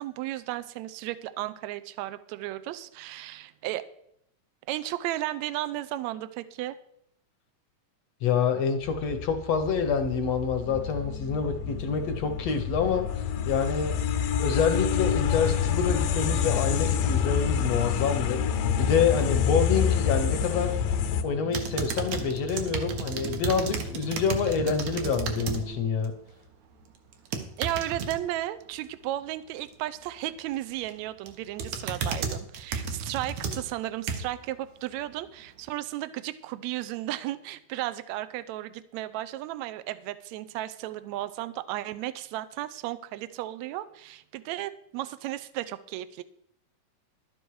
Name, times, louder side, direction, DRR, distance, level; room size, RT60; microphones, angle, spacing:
voice 1, 0.0-3.8 4.7-6.8 27.6-46.2, right 14 dB, 80° right, 13 dB, 1.7 m, -34 dB
voice 2, 8.2-14.0 14.4-20.8 21.2-26.1, left 6 dB, 65° left, 7 dB, 1.7 m, -27 dB
sound 1, 8.8-21.2, left 8 dB, 85° left, 2.5 m, -27 dB
sound 2, 10.6-25.8, left 1 dB, 45° right, 0.9 m, -41 dB
sound 3, 21.5-25.6 26.0-26.3 27.1-28.2 30.5-30.9 31.3-34.4 35.0-35.1, right 5 dB, 65° right, 2.4 m, -33 dB
12.0 x 10.0 x 4.7 m, 0.71 s
omnidirectional pair, 3.8 m